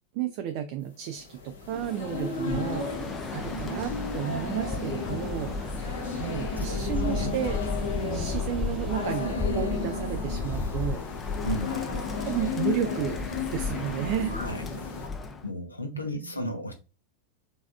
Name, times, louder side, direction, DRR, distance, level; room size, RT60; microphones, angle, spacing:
voice 1, 0.1-2.8 3.3-5.9 6.2-7.6 8.1-11.0 12.2-13.2 13.5-14.3 15.9-16.4, right 11 dB, 45° right, 0.4 m, -32 dB
sound 1, 1.1-15.1, left 4 dB, 65° left, 1.1 m, -34 dB
sound 2, 1.7-9.2, right 2 dB, 10° right, 0.8 m, -46 dB
Bird, 2.4-15.5, left 4 dB, 20° left, 0.6 m, -34 dB
voice 2, 11.4-11.8 14.3-14.6 15.4-16.7, left 1 dB, 85° left, 0.8 m, -33 dB
4.0 x 3.5 x 2.4 m
figure-of-eight pair, 90°, 0 cm